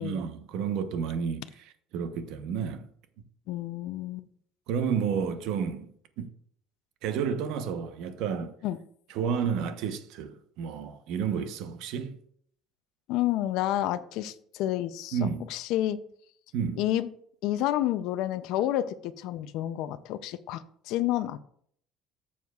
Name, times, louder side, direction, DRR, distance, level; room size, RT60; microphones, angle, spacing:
voice 1, 0.0-2.9 4.7-6.3 7.0-8.5 9.1-12.2 15.1-15.4 16.5-16.8, right 7 dB, 70° right, 0.9 m, -31 dB
voice 2, 3.5-4.3 8.6-8.8 13.1-15.2 15.5-16.0 16.8-17.1 17.4-21.4, left 13 dB, 65° left, 0.5 m, -29 dB
14.0 x 7.1 x 2.4 m
cardioid pair, 145°, 0 cm